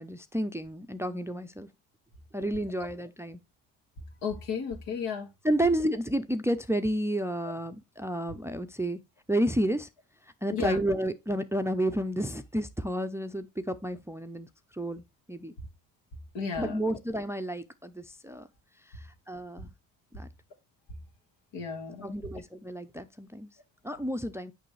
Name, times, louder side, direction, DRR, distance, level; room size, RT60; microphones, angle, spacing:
voice 1, 0.0-1.7 2.3-3.4 5.4-9.0 9.3-9.9 10.4-14.5 14.7-15.5 16.6-18.5 18.9-19.7 20.1-20.3 22.0-23.5 23.8-24.5, right 1 dB, 5° right, 0.5 m, -31 dB
voice 2, 4.2-5.3 10.5-10.8 16.3-16.8 21.5-22.1, left 6 dB, 75° left, 1.7 m, -33 dB
6.7 x 5.3 x 3.2 m
hypercardioid pair, 55°, 44 cm